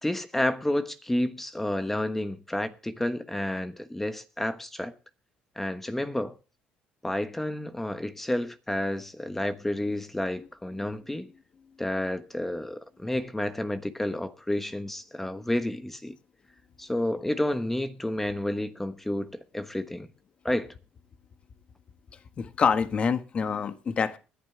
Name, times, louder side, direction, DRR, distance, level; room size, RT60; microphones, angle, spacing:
voice 1, 0.0-4.9 5.6-6.3 7.0-11.3 11.8-16.2 16.8-20.1 20.4-20.7, left 1 dB, 10° left, 1.2 m, -30 dB
voice 2, 22.4-24.2, left 6 dB, 40° left, 1.5 m, -26 dB
20.5 x 11.0 x 3.4 m
cardioid pair, 105°, 3 cm